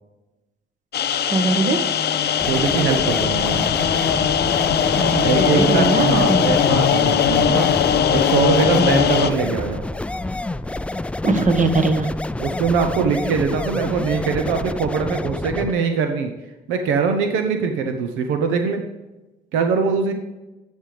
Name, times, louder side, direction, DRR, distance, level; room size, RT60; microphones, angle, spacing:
sound 1, 0.9-9.3, left 8 dB, 55° left, 0.6 m, -20 dB
voice 1, 1.3-1.8 4.9-6.5 8.8-8.9 11.2-12.1, right 3 dB, 40° right, 7 dB, 1.4 m, -21 dB
sound 2, 2.4-15.7, left 2 dB, 5° left, 0.3 m, -28 dB
voice 2, 2.4-3.6 5.2-7.7 8.1-9.8 12.4-16.3 16.7-18.8 19.5-20.1, right 5 dB, 85° right, 6 dB, 0.8 m, -22 dB
11.5 x 5.5 x 3.3 m, 1.0 s
supercardioid pair, 60°, 20 cm